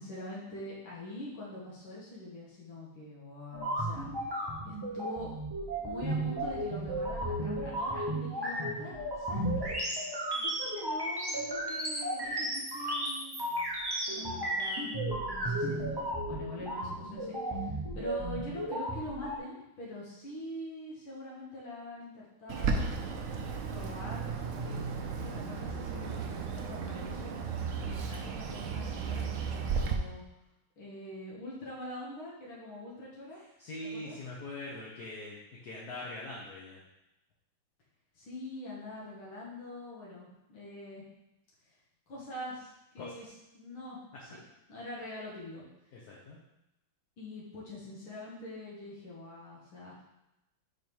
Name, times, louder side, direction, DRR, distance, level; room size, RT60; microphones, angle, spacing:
voice 1, 0.0-4.1 4.7-5.3 5.8-9.8 10.4-13.4 14.1-22.9 23.6-27.3 27.8-30.2 30.8-33.4 33.8-34.2 38.1-41.0 42.1-43.3 43.5-44.4 44.7-45.6 47.2-50.0, left 1 dB, 85° left, -6 dB, 2.4 m, -44 dB
sound 1, 3.5-19.4, right 1 dB, 35° right, 0.3 m, -34 dB
Bird, 22.5-29.9, right 5 dB, 70° right, 0.7 m, -34 dB
voice 2, 27.6-27.9 33.6-36.8 43.0-43.3 45.9-46.4, left 2 dB, 55° left, -5 dB, 1.5 m, -43 dB
5.4 x 5.3 x 4.6 m, 0.91 s
omnidirectional pair, 2.2 m